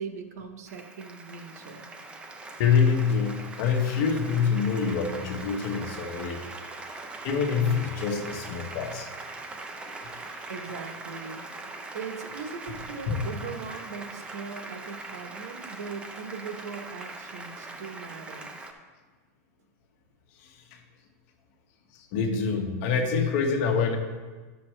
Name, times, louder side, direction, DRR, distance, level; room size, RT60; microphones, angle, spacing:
voice 1, 0.0-1.9 10.5-11.4 11.9-18.5, right 5 dB, 80° right, 6 dB, 1.1 m, -39 dB
Applause, 0.7-18.7, right 3 dB, 10° right, 0.7 m, -41 dB
voice 2, 2.6-6.4 7.2-9.1 10.0-10.2 13.1-13.2 20.4-20.8 21.9-24.0, left 6 dB, 50° left, 3 dB, 1.3 m, -26 dB
12.0 x 6.9 x 3.3 m, 1.4 s
supercardioid pair, 150°, 9 cm